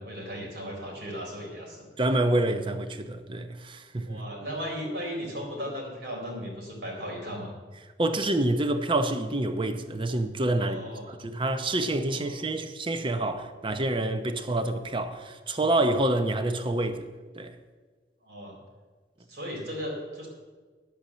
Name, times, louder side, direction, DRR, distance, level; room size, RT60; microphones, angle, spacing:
voice 1, 0.0-1.9 4.1-7.5 10.6-11.2 12.1-12.5 18.2-18.6 19.3-20.3, equal, 70° right, 4.1 m, -36 dB
voice 2, 2.0-4.2 8.0-10.8 11.1-17.1 17.4-17.6, right 1 dB, 30° right, 0.8 m, -27 dB
10.0 x 8.7 x 7.3 m
head